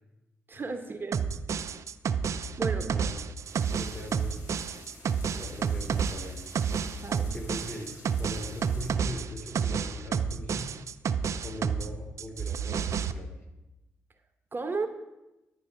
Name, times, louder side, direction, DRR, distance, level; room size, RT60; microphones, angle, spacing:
voice 1, 0.5-1.3 2.6-2.9 6.9-7.3 14.5-14.9, right 4 dB, 35° right, 7 dB, 0.9 m, -34 dB
sound 1, 1.1-11.9 12.2-13.1, right 6 dB, 55° right, 0.5 m, -30 dB
voice 2, 2.9-3.2 3.8-4.4 5.4-6.5 7.3-10.7 11.4-13.3, left 1 dB, 35° left, 0 dB, 3.0 m, -41 dB
sound 2, 3.4-8.9, left 2 dB, 75° left, 1.8 m, -52 dB
9.7 x 4.1 x 6.5 m, 1.0 s
hypercardioid pair, 45°, 6 cm